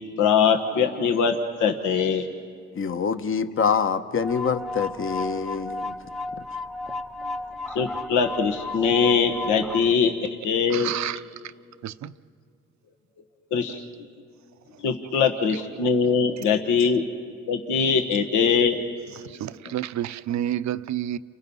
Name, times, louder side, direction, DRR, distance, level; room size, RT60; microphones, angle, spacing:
voice 1, 0.2-2.3 7.7-10.2 10.4-10.9 13.5-13.8 14.8-17.0 17.5-18.8, left 6 dB, 80° left, 1.5 m, -22 dB
voice 2, 2.7-5.9, left 6 dB, 45° left, 1.2 m, -25 dB
sound 1, 4.2-9.9, left 2 dB, ahead, 0.7 m, -33 dB
voice 3, 10.7-11.2 11.8-12.1 13.7-13.8 19.2-21.2, right 11 dB, 65° right, 0.7 m, -29 dB
30.0 x 27.5 x 5.6 m
cardioid pair, 90°, 30 cm